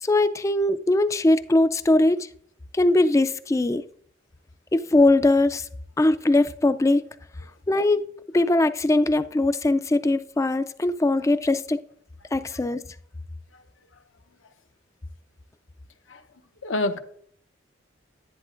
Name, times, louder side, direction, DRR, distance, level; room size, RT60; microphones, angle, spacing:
voice 1, 0.0-2.3 2.7-3.8 4.7-5.7 6.0-7.0 7.7-11.8 12.3-12.8, left 2 dB, 15° left, 0.3 m, -21 dB
voice 2, 16.6-17.0, left 2 dB, 80° left, 0.8 m, -28 dB
10.5 x 10.5 x 2.5 m
head